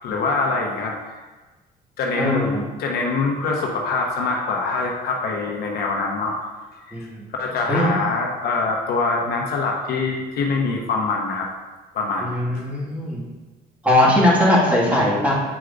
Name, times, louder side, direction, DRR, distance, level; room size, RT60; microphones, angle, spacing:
voice 1, 0.0-0.9 2.0-6.4 7.4-11.5 11.9-12.4, left 3 dB, 70° left, 0 dB, 1.0 m, -24 dB
voice 2, 2.2-2.6 6.9-7.3 7.7-7.9 12.2-13.2 13.8-15.3, left 1 dB, 10° right, -6 dB, 1.9 m, -19 dB
8.2 x 4.7 x 2.6 m, 1.2 s
cardioid pair, 110°, 17 cm